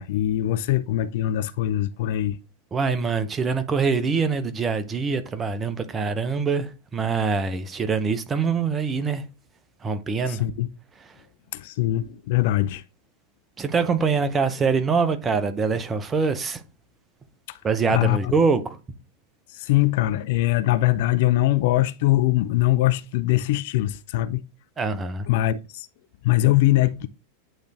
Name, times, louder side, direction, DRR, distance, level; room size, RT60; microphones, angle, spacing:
voice 1, 0.0-2.4 10.3-10.7 11.5-12.8 17.9-18.3 19.5-24.4 25.3-25.9 26.2-27.1, left 15 dB, 50° left, 0.4 m, -22 dB
voice 2, 2.7-9.2 9.8-10.4 13.6-16.6 17.6-18.6 24.8-25.3, right 5 dB, 20° right, 0.7 m, -24 dB
8.9 x 3.3 x 3.4 m
figure-of-eight pair, 90°, 0 cm